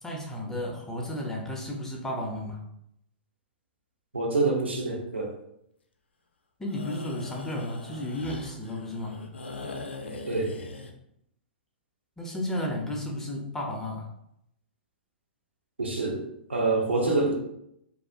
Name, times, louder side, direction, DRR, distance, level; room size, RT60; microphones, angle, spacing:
voice 1, 0.0-2.6 6.6-9.2 12.2-14.1, left 1 dB, 10° left, -1 dB, 0.4 m, -33 dB
voice 2, 4.1-5.3 10.3-10.5 15.8-16.2 16.5-17.3, right 3 dB, 85° right, 0 dB, 0.6 m, -26 dB
sound 1, 6.6-10.9, left 3 dB, 80° left, 0.3 m, -40 dB
2.3 x 2.3 x 2.3 m, 0.76 s
figure-of-eight pair, 110°, 6 cm